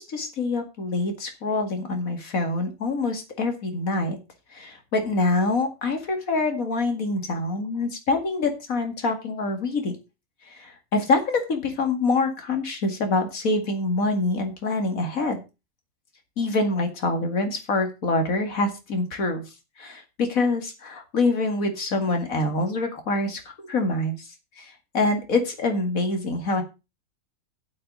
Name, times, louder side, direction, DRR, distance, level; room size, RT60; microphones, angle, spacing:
voice 1, 0.0-4.2 4.5-10.0 10.5-15.4 16.4-19.4 19.8-24.3 24.6-26.6, left 3 dB, 90° left, 5 dB, 2.5 m, -25 dB
9.1 x 8.4 x 5.2 m, 0.28 s
omnidirectional pair, 1.4 m